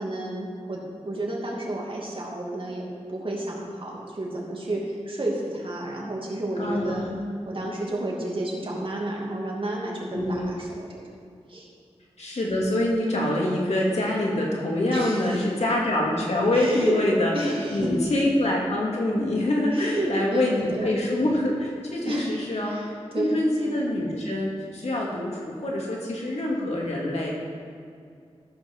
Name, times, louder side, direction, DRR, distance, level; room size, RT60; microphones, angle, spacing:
voice 1, 0.0-7.0 7.5-11.0 11.5-11.7 14.9-15.4 16.5-17.0 17.3-17.9 19.7-20.9 22.0-23.4, right 1 dB, 55° right, -3 dB, 2.6 m, -31 dB
voice 2, 6.6-7.2 10.1-10.5 12.2-27.3, left 1 dB, 80° left, -3 dB, 2.5 m, -25 dB
14.0 x 5.9 x 6.0 m, 2.3 s
wide cardioid pair, 65°, 11 cm